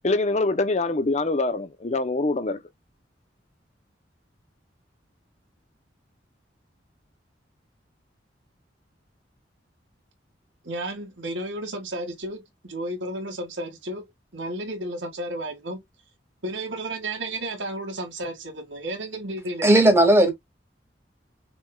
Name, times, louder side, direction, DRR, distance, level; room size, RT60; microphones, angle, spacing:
voice 1, 0.0-2.6, left 2 dB, 35° left, 0.6 m, -24 dB
voice 2, 10.6-15.8 16.4-19.7, right 1 dB, 80° right, 2.0 m, -33 dB
voice 3, 19.6-20.3, right 1 dB, 15° right, 2.1 m, -15 dB
6.3 x 3.5 x 2.3 m
head